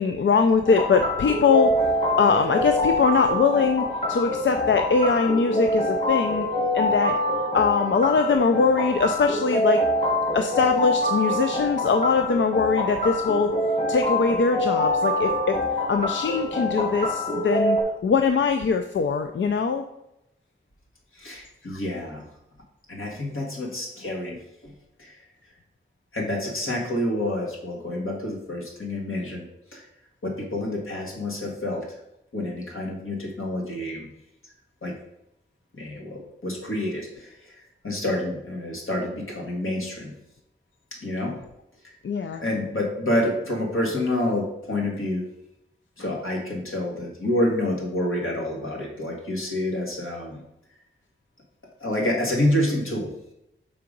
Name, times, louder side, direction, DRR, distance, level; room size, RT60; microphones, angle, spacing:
voice 1, 0.0-1.8 2.2-6.5 6.7-7.2 7.5-9.9 10.3-13.5 13.9-15.6 15.9-17.8 18.0-19.9 21.7-21.8 42.0-42.4, left 5 dB, 70° left, 6 dB, 0.4 m, -22 dB
sound 1, 0.6-17.8, left 1 dB, 45° left, 2.0 m, -25 dB
voice 2, 21.1-22.2 22.9-24.4 24.6-24.7 25.0-25.2 26.1-29.4 29.7-29.9 30.2-31.9 32.3-34.1 34.8-34.9 35.7-40.1 41.0-41.3 42.4-45.2 46.0-50.4 51.8-53.1, left 1 dB, 85° left, -1 dB, 1.6 m, -28 dB
5.8 x 3.8 x 5.1 m, 0.86 s
wide cardioid pair, 75°, 21 cm